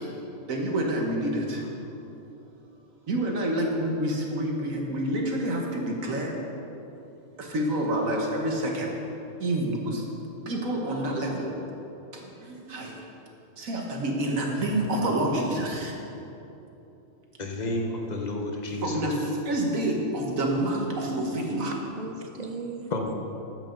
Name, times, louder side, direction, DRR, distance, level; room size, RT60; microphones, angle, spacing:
voice 1, 0.5-1.7 3.1-6.3 7.4-9.0 9.4-10.0 10.5-11.5 12.1-13.0 13.6-15.9 18.8-21.7, right 1 dB, 70° right, 0 dB, 1.8 m, -28 dB
voice 2, 17.4-19.0 22.9-23.1, left 2 dB, 35° left, 1 dB, 1.1 m, -30 dB
voice 3, 21.5-23.1, right 3 dB, 40° right, 4 dB, 0.6 m, -37 dB
13.5 x 9.0 x 3.9 m, 3.0 s
omnidirectional pair, 1.5 m